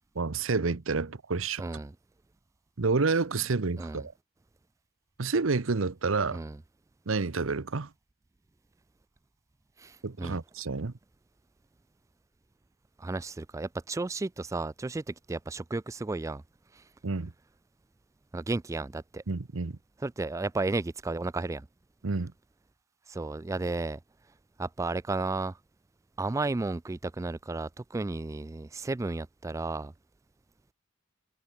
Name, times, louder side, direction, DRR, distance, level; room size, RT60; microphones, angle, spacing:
voice 1, 0.1-1.6 2.8-4.1 5.2-6.4 7.1-7.9 10.0-10.9 17.0-17.3 19.3-19.8 22.0-22.3, right 4 dB, 75° right, 0.9 m, -29 dB
voice 2, 1.6-1.9 3.8-4.0 6.3-6.6 9.8-10.4 13.0-16.4 16.7-16.8 18.3-19.2 20.0-21.7 23.1-24.0 24.6-25.6 26.2-29.9, right 3 dB, 15° right, 0.3 m, -33 dB
head